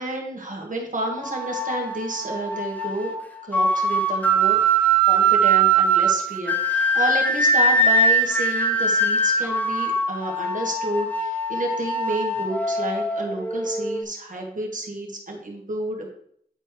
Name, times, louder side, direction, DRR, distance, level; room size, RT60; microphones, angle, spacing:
voice 1, 0.0-3.1 3.4-16.1, right 2 dB, 55° right, -1 dB, 1.7 m, -30 dB
sound 1, 1.2-14.0, right 2 dB, 10° left, 0.8 m, -22 dB
9.9 x 4.3 x 3.2 m, 0.66 s
wide cardioid pair, 65°, 16 cm